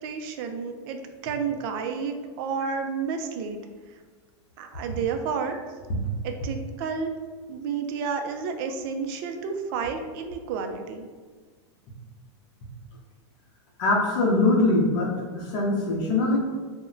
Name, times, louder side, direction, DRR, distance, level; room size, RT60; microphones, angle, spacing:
voice 1, 0.0-3.6 4.6-5.6 6.2-7.1 7.5-11.1, right 6 dB, 50° right, 5 dB, 0.4 m, -31 dB
voice 2, 13.8-16.4, left 2 dB, 55° left, -3 dB, 0.7 m, -23 dB
2.1 x 2.1 x 3.7 m, 1.5 s
hypercardioid pair, 125°, 15 cm